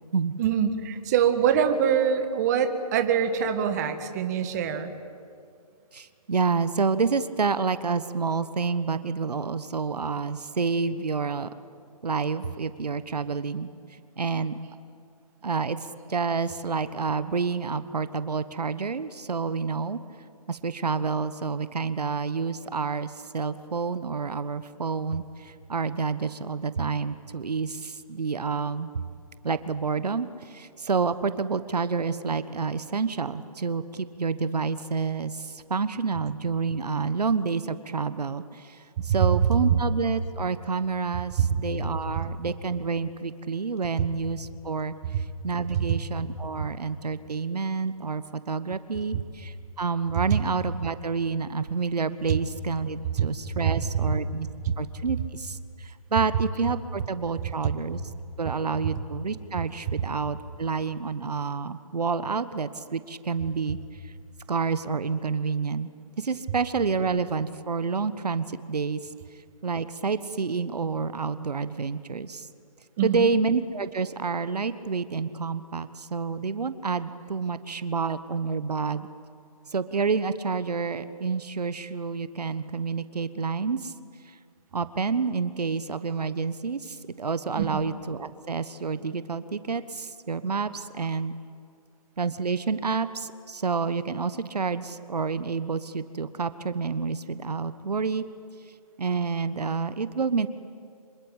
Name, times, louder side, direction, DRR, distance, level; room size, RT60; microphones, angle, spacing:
voice 1, 0.4-4.9 39.1-39.2 39.7-39.8 41.4-41.6 42.1-42.2 52.3-52.4 53.2-53.3 73.0-73.3 87.6-87.8, right 8 dB, 25° right, 8 dB, 1.6 m, -24 dB
voice 2, 5.9-11.5 12.0-14.6 15.4-15.8 16.1-20.0 20.5-29.0 29.4-54.5 54.8-58.0 58.4-64.1 64.5-65.9 66.2-69.0 69.6-72.5 73.0-79.1 79.7-83.9 84.2-84.4 84.7-91.3 92.2-98.3 99.0-100.5, right 5 dB, 80° right, 13 dB, 1.3 m, -29 dB
26.5 x 24.0 x 9.0 m, 2.4 s
hypercardioid pair, 160°, 20 cm